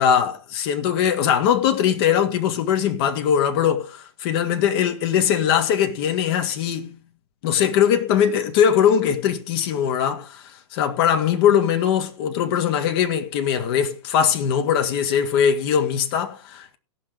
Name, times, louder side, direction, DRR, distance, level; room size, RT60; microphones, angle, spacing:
voice 1, 0.0-7.0 7.4-10.4 10.7-16.8, left 8 dB, 50° left, 1.8 m, -21 dB
17.0 x 6.2 x 5.1 m
hypercardioid pair, 125°, 16 cm